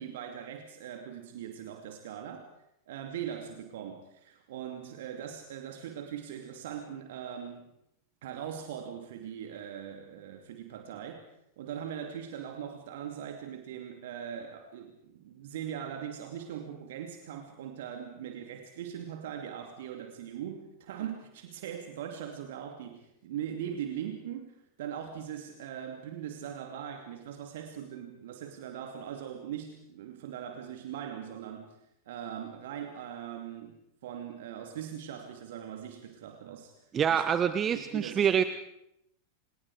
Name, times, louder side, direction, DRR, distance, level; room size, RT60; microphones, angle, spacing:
voice 1, 0.0-2.5 2.9-7.7 8.2-11.3 11.6-31.8 32.1-37.2 37.6-38.4, right 9 dB, 55° right, 5 dB, 2.6 m, -40 dB
voice 2, 36.9-38.4, right 8 dB, 25° right, 12 dB, 1.1 m, -26 dB
29.0 x 27.5 x 5.0 m, 0.79 s
figure-of-eight pair, 90°, 0 cm